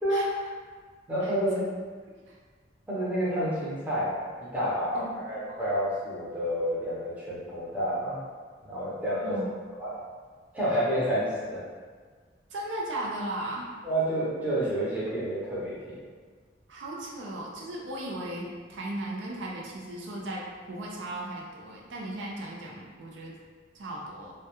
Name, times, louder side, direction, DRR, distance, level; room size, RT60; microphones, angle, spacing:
voice 1, 1.1-1.7 2.9-4.1 4.5-8.2 8.7-9.4 9.8-9.9 10.5-11.6 13.8-16.0, equal, 10° right, -9 dB, 0.6 m, -29 dB
voice 2, 4.9-5.3 9.2-9.5 10.7-10.8 12.5-13.7 16.7-23.4 23.7-24.3, right 1 dB, 80° right, -3 dB, 0.4 m, -36 dB
2.2 x 2.1 x 2.8 m, 1.5 s
head